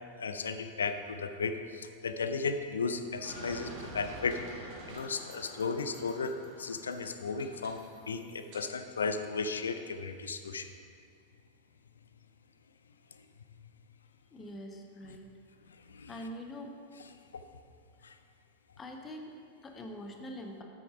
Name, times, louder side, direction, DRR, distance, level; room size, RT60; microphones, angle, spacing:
voice 1, 0.2-4.4 4.9-10.7 15.8-16.1 18.0-18.2, left 4 dB, 70° left, 9 dB, 0.5 m, -35 dB
sound 1, 3.2-8.6, right 2 dB, 45° right, 1.6 m, -48 dB
voice 2, 14.3-15.3 16.1-16.7 18.8-20.6, equal, 20° left, 3 dB, 1.0 m, -44 dB
8.4 x 6.3 x 4.9 m, 2.3 s
figure-of-eight pair, 90°, 0 cm